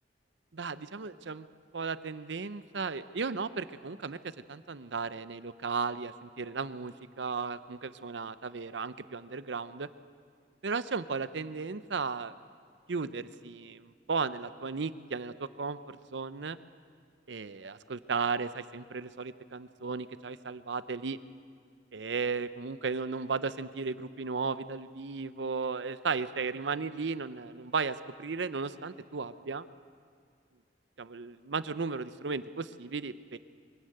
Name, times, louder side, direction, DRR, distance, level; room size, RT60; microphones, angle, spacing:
voice 1, 0.5-1.5 1.7-4.2 4.5-9.9 10.6-12.3 12.9-16.6 17.3-21.2 21.9-29.7 31.0-33.4, right 4 dB, 80° right, 14 dB, 0.7 m, -35 dB
23.0 x 16.5 x 7.8 m, 2.2 s
head